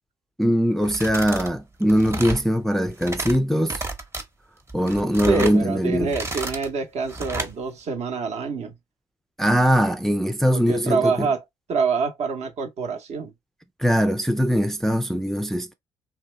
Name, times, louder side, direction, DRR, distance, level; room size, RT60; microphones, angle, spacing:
voice 1, 0.4-3.8 4.7-6.1 9.4-11.3 13.8-15.7, equal, ahead, 0.4 m, -21 dB
sound 1, 0.8-1.5 1.8-2.5 2.9-3.4 3.7-4.2 4.7-5.6 6.0-6.7 7.1-7.5, right 2 dB, 20° right, 0.8 m, -31 dB
voice 2, 5.3-8.7 10.5-11.4 11.7-13.3, right 5 dB, 55° right, 0.8 m, -26 dB
2.8 x 2.2 x 3.2 m
hypercardioid pair, 55°, 14 cm